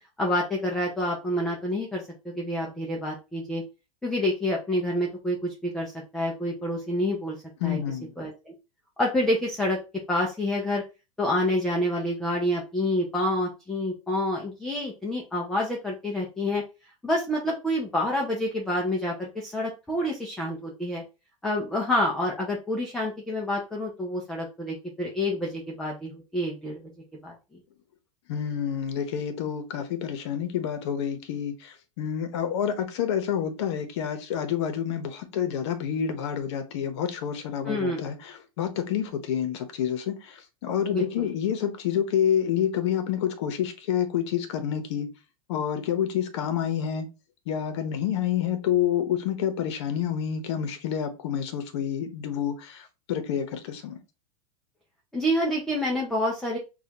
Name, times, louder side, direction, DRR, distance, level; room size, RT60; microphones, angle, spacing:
voice 1, 0.2-3.6 4.0-7.4 7.6-7.8 8.2-8.5 9.0-9.8 10.1-10.8 11.2-16.6 17.0-21.0 21.4-26.8 27.2-27.3 37.6-38.0 40.9-41.3 55.1-56.6, left 1 dB, ahead, 0.4 m, -28 dB
voice 2, 7.6-8.1 28.3-45.1 45.5-47.1 47.5-54.0, left 9 dB, 55° left, 0.9 m, -28 dB
6.1 x 2.3 x 2.8 m
supercardioid pair, 170°, 18 cm